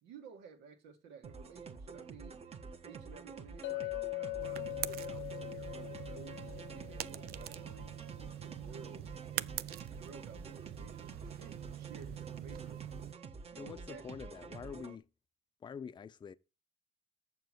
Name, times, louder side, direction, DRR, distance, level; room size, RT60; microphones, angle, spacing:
voice 1, 0.0-2.4 2.6-13.1 13.5-14.1, right 6 dB, 90° right, 2.0 m, -55 dB
sound 1, 1.2-15.0, right 4 dB, 35° right, 1.2 m, -49 dB
Chink clink, 3.6-8.1, left 20 dB, 80° left, 0.6 m, -42 dB
sound 2, 4.4-13.1, right 13 dB, 65° right, 0.5 m, -44 dB
voice 2, 13.6-15.0 15.6-16.3, left 6 dB, 25° left, 0.5 m, -46 dB
7.1 x 6.9 x 8.0 m
cardioid pair, 110°, 17 cm